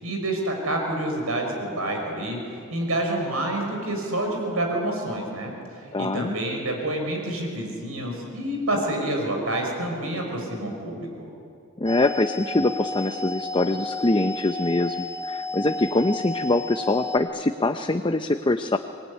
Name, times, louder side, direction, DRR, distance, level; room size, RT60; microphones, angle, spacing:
voice 1, 0.0-5.5 5.8-11.3, right 1 dB, 80° right, 2 dB, 5.9 m, -28 dB
voice 2, 5.9-6.3 11.8-18.8, left 2 dB, 25° left, 7 dB, 0.6 m, -24 dB
sound 1, 11.9-17.2, left 2 dB, 5° right, 1.5 m, -33 dB
25.5 x 20.5 x 9.8 m, 2.5 s
head